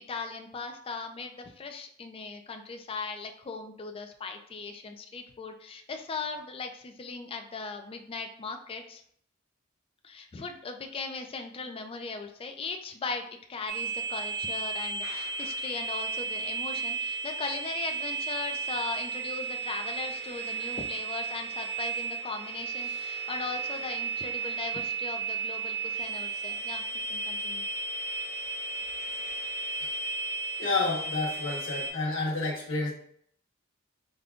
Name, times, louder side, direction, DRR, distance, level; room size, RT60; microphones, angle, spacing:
voice 1, 0.1-9.0 10.0-13.2 13.5-27.6, left 4 dB, 30° left, 5 dB, 0.4 m, -38 dB
sound 1, 13.7-31.9, right 4 dB, 55° right, 1.0 m, -34 dB
voice 2, 30.6-32.9, left 3 dB, 65° left, -4 dB, 1.3 m, -30 dB
5.1 x 2.2 x 2.4 m, 0.64 s
head